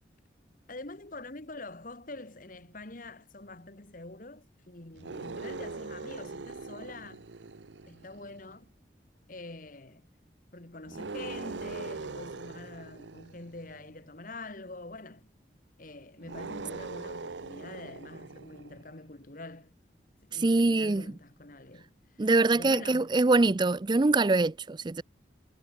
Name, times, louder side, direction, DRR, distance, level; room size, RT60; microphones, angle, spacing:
voice 1, 0.7-7.3 7.9-8.7 9.3-10.1 10.5-15.3 15.8-19.7 20.2-22.3 22.5-23.1, left 2 dB, 45° left, 1.7 m, -45 dB
sound 1, 4.9-8.5 10.9-14.0 16.2-18.9, right 3 dB, 80° right, 0.8 m, -41 dB
voice 2, 20.3-21.1 22.2-25.0, right 3 dB, 25° right, 0.4 m, -24 dB
head